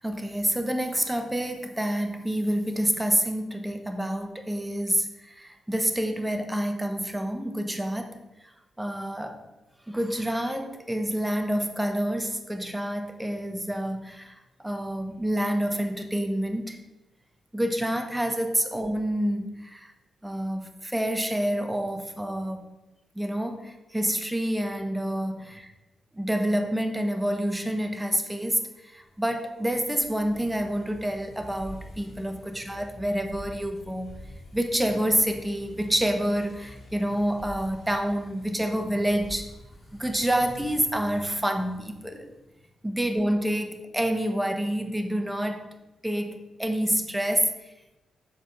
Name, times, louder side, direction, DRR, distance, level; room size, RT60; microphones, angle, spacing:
voice 1, 0.0-8.1 8.8-9.4 9.9-14.3 14.6-16.8 17.5-19.9 20.2-22.7 23.1-25.7 26.2-34.2 34.5-39.5 39.9-42.3 42.8-45.7 46.0-47.6, right 1 dB, 10° right, 6 dB, 1.2 m, -28 dB
sound 1, 28.8-42.2, left 1 dB, 40° left, 2.0 m, -47 dB
7.3 x 5.1 x 4.7 m, 1.0 s
supercardioid pair, 45°, 0 cm